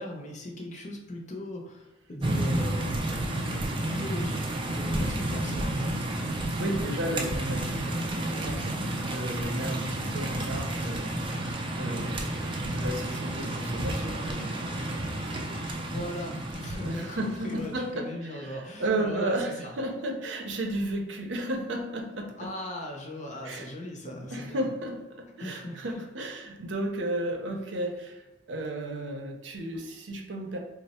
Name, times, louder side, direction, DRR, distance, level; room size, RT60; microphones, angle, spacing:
voice 1, 0.0-3.0 3.7-5.9 15.8-19.7 22.4-24.7 25.4-26.0, left 1 dB, 40° left, 0 dB, 0.6 m, -39 dB
sound 1, 2.2-17.8, right 1 dB, 25° right, 0.3 m, -31 dB
voice 2, 6.6-14.6 15.9-16.1 16.7-22.5 23.4-23.7 24.3-28.2 28.5-30.6, right 1 dB, 75° right, 2 dB, 0.6 m, -33 dB
3.2 x 2.0 x 4.1 m, 1.0 s
head